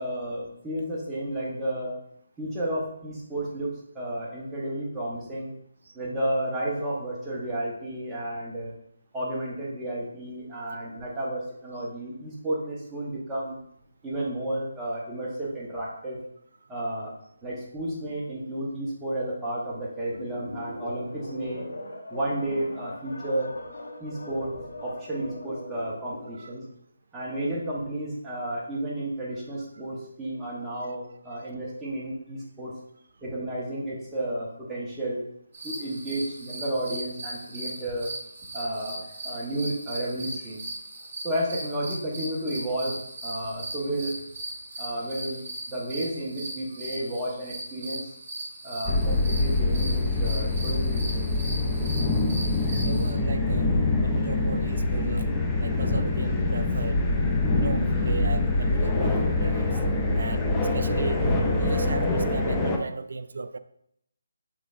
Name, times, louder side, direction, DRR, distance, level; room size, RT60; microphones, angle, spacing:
voice 1, 0.0-2.0 2.4-5.5 5.9-8.7 9.1-13.6 14.0-16.2 16.7-17.1 17.4-21.7 22.1-23.5 24.0-26.6 27.1-32.7 33.2-35.2 35.6-38.1 38.5-40.6 41.2-44.1 44.8-48.1 48.6-51.3 51.8-52.0, right 1 dB, 5° right, -7 dB, 0.9 m, -32 dB
sound 1, 20.1-26.5, left 1 dB, 85° left, 0.9 m, -40 dB
sound 2, 35.5-53.1, right 1 dB, 45° right, 1.5 m, -38 dB
sound 3, 48.8-62.8, left 2 dB, 10° left, 0.4 m, -25 dB
voice 2, 52.8-53.7 54.0-55.3 55.6-59.8 60.1-60.5 60.7-61.2 61.5-63.6, right 3 dB, 65° right, 12 dB, 0.3 m, -35 dB
6.3 x 3.2 x 2.4 m, 0.72 s
hypercardioid pair, 165°, 0 cm